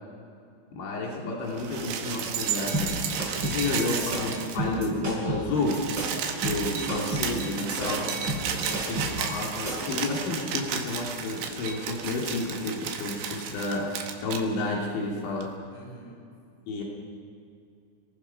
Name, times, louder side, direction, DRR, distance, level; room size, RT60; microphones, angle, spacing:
voice 1, 0.7-3.0 3.4-5.8 6.4-8.0 8.9-13.9 14.2-15.5 16.7-16.8, left 3 dB, 80° left, -2 dB, 5.0 m, -30 dB
sound 1, 1.5-4.8 5.1-5.2 5.4-14.4 15.4-15.5, right 7 dB, 70° right, 3.6 m, -33 dB
sound 2, 2.7-10.0, right 1 dB, 25° right, 6.3 m, -32 dB
voice 2, 3.3-4.9 7.8-9.3 15.7-16.2, right 1 dB, 40° left, -2 dB, 6.3 m, -41 dB
Keyboard (musical), 6.6-9.3, right 8 dB, 90° right, 5.7 m, -41 dB
30.0 x 19.0 x 5.7 m, 2.5 s
omnidirectional pair, 5.2 m